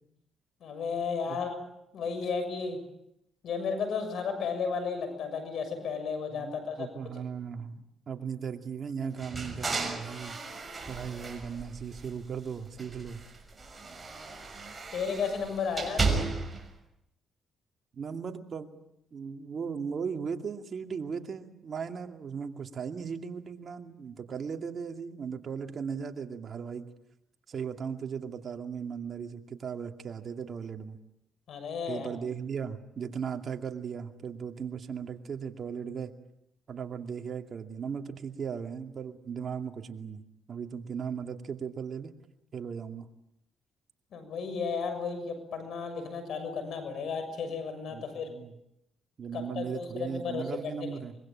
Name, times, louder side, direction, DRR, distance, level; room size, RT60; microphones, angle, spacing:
voice 1, 0.6-1.5 1.9-2.8 3.4-6.9 14.9-16.3 31.5-32.1 44.1-48.3 49.3-50.9, left 5 dB, 70° left, 9 dB, 6.7 m, -33 dB
voice 2, 6.3-10.4 10.9-13.2 17.9-18.7 19.1-26.9 27.5-31.0 31.9-36.1 36.7-42.1 42.5-43.1 47.9-48.5 49.2-51.2, right 6 dB, 50° right, 5 dB, 2.4 m, -37 dB
sound 1, 9.2-12.4 12.7-16.7, right 3 dB, 25° right, 6.3 m, -35 dB
25.0 x 23.0 x 8.8 m, 0.81 s
cardioid pair, 90°, 0 cm